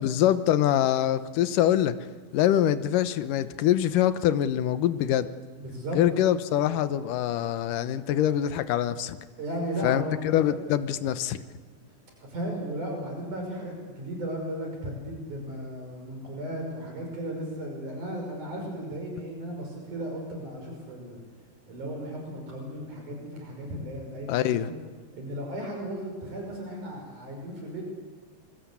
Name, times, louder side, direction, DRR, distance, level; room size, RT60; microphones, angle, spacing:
voice 1, 0.0-2.0 2.3-5.3 5.9-9.2 9.8-11.4 24.3-24.7, left 11 dB, 80° left, 12 dB, 2.6 m, -24 dB
voice 2, 5.6-6.0 9.4-10.3 12.2-21.2 21.7-24.7 25.1-27.8, right 1 dB, 65° right, 1 dB, 7.0 m, -35 dB
27.0 x 22.5 x 8.4 m, 1.4 s
omnidirectional pair, 3.8 m